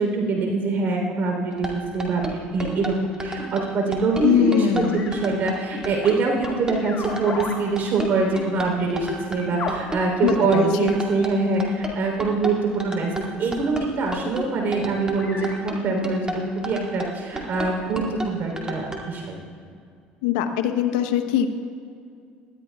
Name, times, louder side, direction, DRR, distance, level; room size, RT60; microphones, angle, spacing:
voice 1, 0.0-19.4, right 3 dB, 55° right, 1 dB, 3.6 m, -24 dB
sound 1, 1.5-19.0, right 2 dB, 20° right, 2.4 m, -33 dB
voice 2, 4.2-5.0 10.2-10.9 20.2-21.5, left 9 dB, 85° left, 7 dB, 0.9 m, -22 dB
sound 2, 4.8-5.2 6.0-10.5 11.1-12.1 13.3-13.6 14.3-14.4 15.1-16.3, left 4 dB, 45° left, 2.0 m, -36 dB
19.5 x 13.0 x 2.4 m, 2.3 s
supercardioid pair, 85°, 4 cm